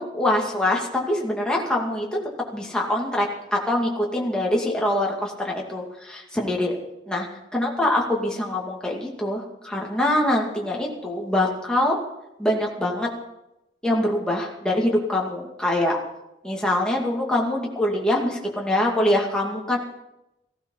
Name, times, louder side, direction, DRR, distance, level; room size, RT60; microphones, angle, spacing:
voice 1, 0.0-2.2 2.5-6.8 7.1-7.3 7.5-12.0 12.4-13.1 13.8-16.0 16.4-19.8, left 1 dB, 5° left, -2 dB, 2.4 m, -24 dB
16.0 x 14.0 x 5.6 m, 0.92 s
head